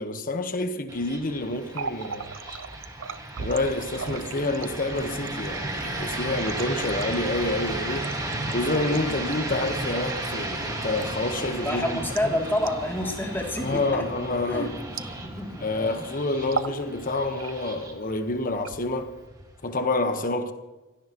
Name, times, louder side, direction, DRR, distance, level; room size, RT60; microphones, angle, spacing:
voice 1, 0.0-2.3 3.4-8.1 8.5-12.3 13.6-14.7 15.6-19.1 19.6-20.5, left 2 dB, 40° left, 1.3 m, -28 dB
sound 1, 0.9-19.9, right 1 dB, 20° right, 2.0 m, -35 dB
Water tap faucet, 1.6-15.6 15.9-16.1 16.4-16.8 17.2-17.8 18.5-19.2, right 5 dB, 70° right, 0.7 m, -39 dB
sound 2, 4.8-14.5, left 3 dB, 70° left, 2.5 m, -47 dB
voice 2, 11.6-14.0 14.5-14.7 15.2-15.7, left 1 dB, 10° left, 3.0 m, -28 dB
27.0 x 16.5 x 3.1 m
head